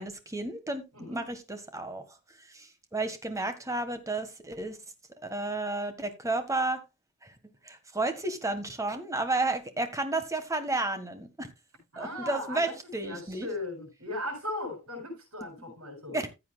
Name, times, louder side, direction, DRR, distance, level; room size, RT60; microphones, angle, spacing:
voice 1, 0.0-2.0 2.5-4.8 5.2-6.8 7.2-7.3 7.6-11.5 12.0-13.5 16.1-16.3, right 2 dB, 15° right, 1.4 m, -32 dB
voice 2, 11.9-12.7 13.0-16.2, left 1 dB, 75° right, 7.1 m, -37 dB
15.0 x 8.5 x 2.3 m
head